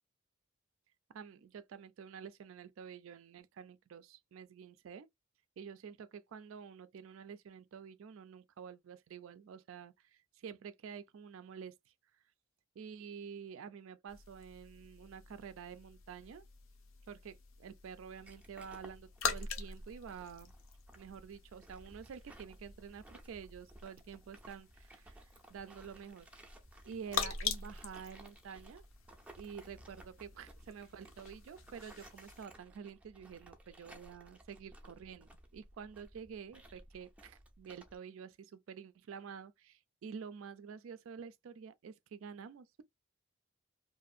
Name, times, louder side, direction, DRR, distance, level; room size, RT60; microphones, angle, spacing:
voice 1, 1.1-5.1 5.6-11.8 12.8-16.4 17.1-20.5 21.0-25.2 25.5-26.3 26.8-28.8 29.4-42.8, right 7 dB, 75° right, 0.3 m, -49 dB
sound 1, 14.1-32.4, left 6 dB, 75° left, 0.6 m, -45 dB
sound 2, 18.2-38.0, right 1 dB, 5° right, 0.4 m, -58 dB
2.5 x 2.4 x 2.5 m
head